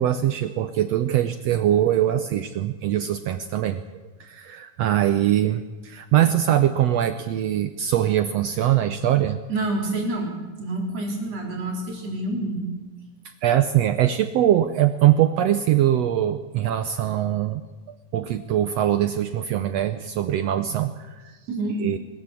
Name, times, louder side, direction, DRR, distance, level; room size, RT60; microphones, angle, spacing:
voice 1, 0.0-3.8 4.2-9.4 13.4-17.6 18.1-21.4 21.8-22.0, right 11 dB, 85° right, 11 dB, 1.4 m, -22 dB
voice 2, 9.5-12.7 21.5-21.8, right 2 dB, 50° right, 1 dB, 4.6 m, -28 dB
22.5 x 14.5 x 8.4 m, 1.3 s
omnidirectional pair, 3.9 m